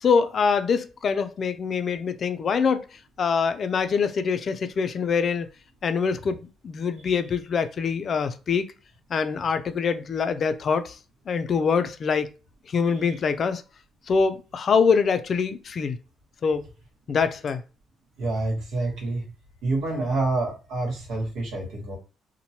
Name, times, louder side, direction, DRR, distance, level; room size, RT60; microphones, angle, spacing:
voice 1, 0.0-2.9 3.2-5.5 5.8-8.7 9.1-11.0 11.3-12.3 12.7-13.6 14.1-16.0 16.4-16.7 17.1-17.6, left 5 dB, 50° left, 0.4 m, -24 dB
voice 2, 18.2-19.2 19.6-22.0, right 2 dB, 85° right, 1.1 m, -27 dB
2.9 x 2.1 x 2.8 m
cardioid pair, 90°, 0 cm